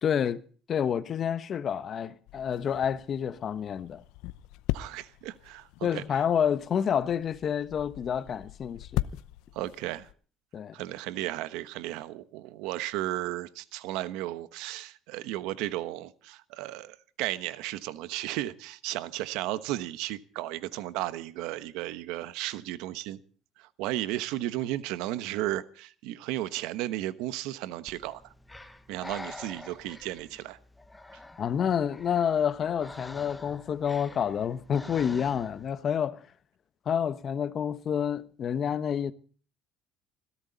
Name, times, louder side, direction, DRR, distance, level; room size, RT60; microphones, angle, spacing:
voice 1, 0.0-0.4 0.7-4.0 5.8-9.1 10.5-10.7 31.4-36.2 36.9-39.1, left 8 dB, 40° left, 1.1 m, -29 dB
sound 1, 2.3-10.1, left 16 dB, 80° left, 0.7 m, -39 dB
voice 2, 4.7-6.0 9.5-10.1 10.7-23.2 23.6-28.3 28.9-30.6, right 15 dB, 80° right, 1.1 m, -34 dB
Breathing, 27.9-35.7, left 2 dB, 10° left, 1.3 m, -47 dB
21.5 x 16.5 x 4.1 m
cardioid pair, 135°, 0 cm